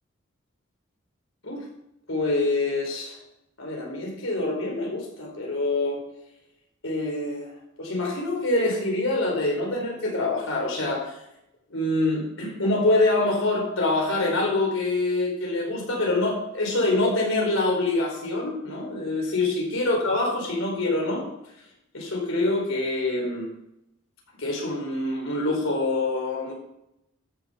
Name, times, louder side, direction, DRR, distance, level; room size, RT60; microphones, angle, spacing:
voice 1, 2.1-3.2 3.6-6.0 6.8-7.5 7.8-11.1 11.7-21.2 21.9-23.5 24.4-26.5, left 2 dB, 80° left, 0 dB, 4.6 m, -25 dB
13.0 x 6.8 x 5.7 m, 0.82 s
head